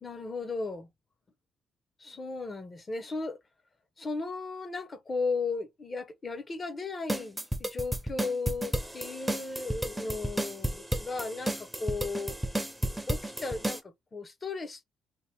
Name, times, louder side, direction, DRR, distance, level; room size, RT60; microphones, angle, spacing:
voice 1, 0.0-0.9 2.0-3.4 4.0-12.4 13.1-14.8, left 3 dB, 35° left, 0.7 m, -35 dB
sound 1, 7.1-13.8, right 1 dB, 5° right, 0.5 m, -32 dB
2.9 x 2.1 x 3.2 m
cardioid pair, 90°, 0 cm